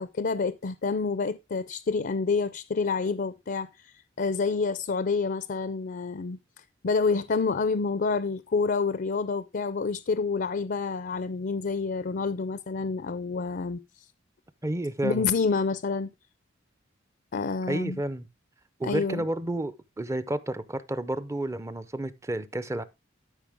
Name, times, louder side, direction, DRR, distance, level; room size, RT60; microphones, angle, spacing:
voice 1, 0.0-3.7 4.2-6.4 6.8-13.8 15.0-16.1 17.3-18.0 18.8-19.2, left 4 dB, 50° left, 0.5 m, -28 dB
voice 2, 14.6-15.3 17.7-18.2 18.8-22.8, right 1 dB, 15° right, 0.6 m, -31 dB
12.5 x 5.5 x 3.4 m
head